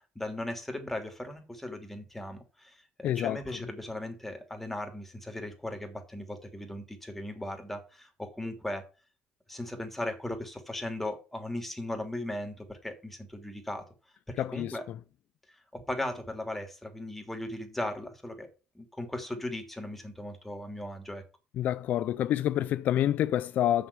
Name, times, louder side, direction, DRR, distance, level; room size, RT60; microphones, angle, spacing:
voice 1, 0.0-8.8 9.5-13.8 14.3-14.9 15.7-18.5 18.7-21.2, left 1 dB, 5° left, 3.0 m, -37 dB
voice 2, 3.0-3.4 14.4-14.8 21.6-23.9, left 12 dB, 65° left, 0.4 m, -27 dB
7.0 x 6.6 x 7.1 m
supercardioid pair, 85°, 3 cm